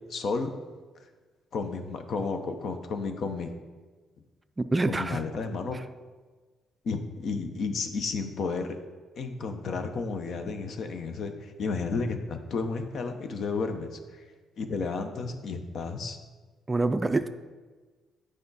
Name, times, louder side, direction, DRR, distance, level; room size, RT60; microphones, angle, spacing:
voice 1, 0.1-0.5 1.5-3.5 4.9-5.8 6.8-8.8 9.2-14.2 14.6-16.2, left 4 dB, 60° left, 0.7 m, -32 dB
voice 2, 4.6-5.2 16.7-17.3, right 2 dB, 20° right, 0.3 m, -26 dB
8.4 x 5.0 x 4.0 m
cardioid pair, 90°, 0 cm